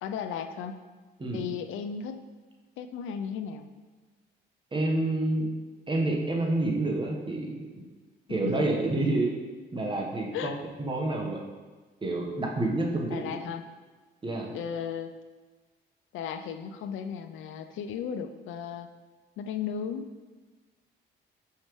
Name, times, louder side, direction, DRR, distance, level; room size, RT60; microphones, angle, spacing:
voice 1, 0.0-0.8 1.3-2.2 2.8-3.7 8.4-8.7 10.3-10.6 13.1-13.6 14.5-15.1 16.1-18.9 19.4-20.1, left 7 dB, 85° left, 8 dB, 0.5 m, -35 dB
voice 2, 4.7-5.5 5.9-7.6 8.3-9.3 9.7-10.5 10.8-11.4 12.0-13.4 14.2-14.5, right 2 dB, 25° right, -1 dB, 1.2 m, -28 dB
6.3 x 5.7 x 3.1 m, 1.3 s
cardioid pair, 90°, 20 cm